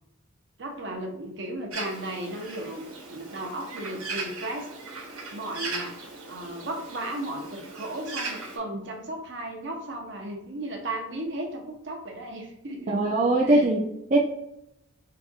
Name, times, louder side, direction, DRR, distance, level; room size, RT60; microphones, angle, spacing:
voice 1, 0.6-2.8 3.1-4.7 5.3-6.0 6.3-12.9 13.4-13.6, right 1 dB, 55° right, 2 dB, 0.8 m, -35 dB
Bird, 1.7-8.6, right 3 dB, 85° right, 1.1 m, -38 dB
voice 2, 12.9-14.2, right 2 dB, 35° right, -2 dB, 0.4 m, -22 dB
4.8 x 2.5 x 2.5 m, 0.82 s
head